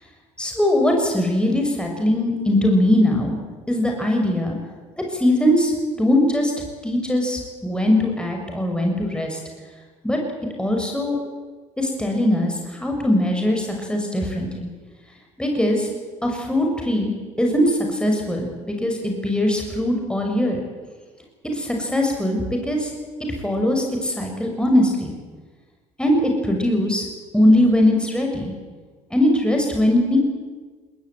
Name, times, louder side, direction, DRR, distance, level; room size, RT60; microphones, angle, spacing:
voice 1, 0.4-3.4 3.7-4.6 5.1-6.5 6.8-9.4 10.0-10.2 10.6-11.2 11.8-14.7 15.4-15.9 16.2-17.1 17.4-20.6 21.5-22.9 23.4-25.1 26.0-27.0 27.3-28.5 29.1-30.2, left 1 dB, 5° left, 2 dB, 6.2 m, -20 dB
20.5 x 20.0 x 9.5 m, 1.4 s
hypercardioid pair, 65°, 18 cm